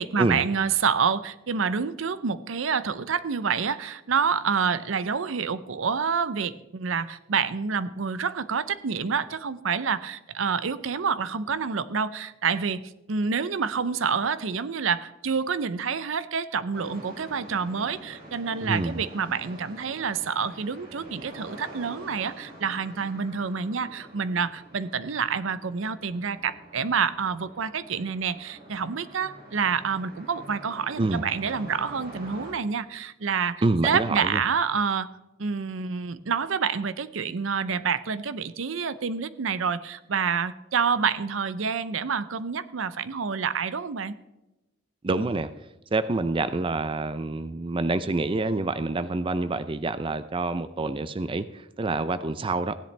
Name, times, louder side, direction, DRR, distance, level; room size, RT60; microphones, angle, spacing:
voice 1, 0.0-35.1 35.4-44.2, right 6 dB, 75° right, 15 dB, 0.6 m, -28 dB
sound 1, 16.7-32.5, right 1 dB, 45° right, 3.3 m, -46 dB
voice 2, 18.6-19.0 31.0-31.2 33.6-34.4 45.0-45.5 45.9-52.8, right 2 dB, 25° right, 13 dB, 0.4 m, -27 dB
16.0 x 10.5 x 3.3 m, 1.0 s
head